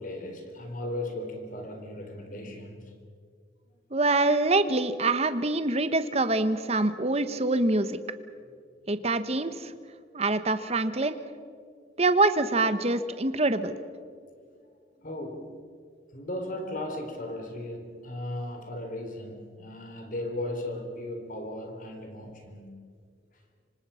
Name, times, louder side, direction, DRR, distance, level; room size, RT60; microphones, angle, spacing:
voice 1, 0.0-3.0 14.4-14.5 15.0-15.5 16.1-22.8, left 1 dB, 45° left, 4 dB, 3.8 m, -36 dB
voice 2, 3.9-8.0 8.9-9.7 10.1-11.2 12.0-13.7, right 2 dB, 35° right, 11 dB, 1.2 m, -25 dB
26.0 x 25.0 x 5.8 m, 2.2 s
head